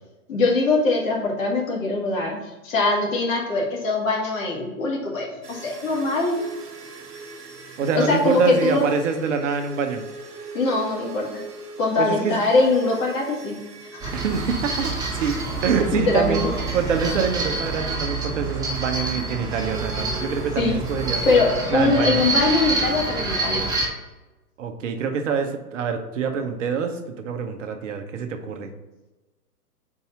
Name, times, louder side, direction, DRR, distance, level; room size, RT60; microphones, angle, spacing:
voice 1, 0.3-6.4 7.9-8.9 10.5-11.4 11.8-13.6 14.0-14.1 15.9-16.4 20.6-20.8 21.3-23.7, left 3 dB, 60° left, -2 dB, 2.1 m, -22 dB
Distorted piano, 5.4-21.4, right 4 dB, 85° right, 1.0 m, -42 dB
voice 2, 7.8-10.1 12.0-12.4 14.1-15.4 15.6-21.2 21.7-22.2 24.6-28.7, right 6 dB, 50° right, 5 dB, 0.9 m, -25 dB
sound 1, 14.0-23.9, right 3 dB, 10° right, 1.3 m, -27 dB
4.8 x 4.1 x 5.5 m, 1.1 s
figure-of-eight pair, 120°, 46 cm